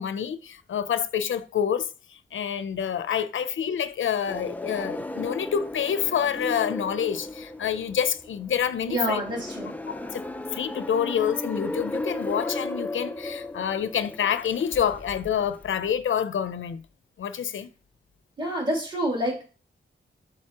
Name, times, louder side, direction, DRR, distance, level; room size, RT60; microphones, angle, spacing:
voice 1, 0.0-1.9 2.3-9.2 10.1-10.2 10.5-16.8 17.2-17.7, left 8 dB, 90° left, 0.6 m, -27 dB
sound 1, 4.3-15.9, left 2 dB, 10° left, 0.4 m, -35 dB
voice 2, 8.9-9.7 18.4-19.4, equal, 25° right, 2.9 m, -27 dB
11.0 x 4.0 x 2.9 m
wide cardioid pair, 150°, 20 cm